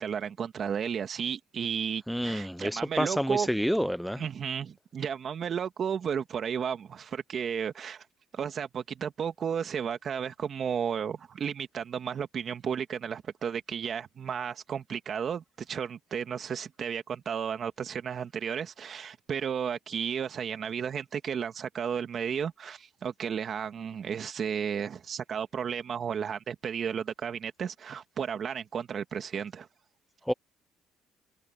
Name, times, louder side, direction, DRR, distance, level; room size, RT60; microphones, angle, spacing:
voice 1, 0.0-3.5 4.2-8.1 8.3-29.7, right 7 dB, 50° right, 2.0 m, -33 dB
voice 2, 2.1-4.2 30.3-30.4, equal, ahead, 0.8 m, -29 dB
supercardioid pair, 80°, 0 cm